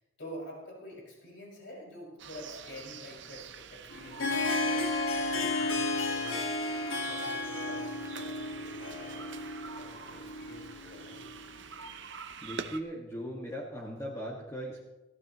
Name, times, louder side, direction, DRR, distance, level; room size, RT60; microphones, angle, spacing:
voice 1, 0.2-4.9 5.1-6.5 6.9-11.3, equal, 60° left, -2 dB, 5.9 m, -48 dB
sound 1, 2.2-12.8, right 6 dB, 60° right, 0.8 m, -46 dB
Harp, 3.9-11.7, left 2 dB, 85° left, 1.8 m, -33 dB
voice 2, 12.4-14.8, equal, 15° left, -3 dB, 1.8 m, -38 dB
21.0 x 15.0 x 3.1 m, 1.1 s
head